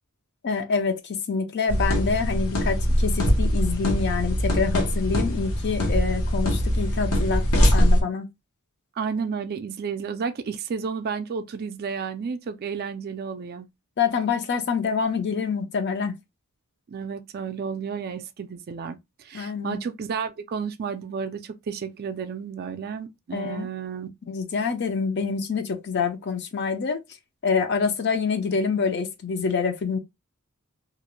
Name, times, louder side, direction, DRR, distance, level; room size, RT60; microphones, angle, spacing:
voice 1, 0.4-8.3 14.0-16.1 19.3-19.8 23.3-23.7 24.3-27.0 27.4-30.0, left 5 dB, 50° left, 0.5 m, -26 dB
sound 1, 1.7-8.0, equal, 80° left, 0.8 m, -22 dB
voice 2, 9.0-13.7 16.9-24.1, right 6 dB, 45° right, 0.3 m, -32 dB
2.4 x 2.1 x 2.9 m
head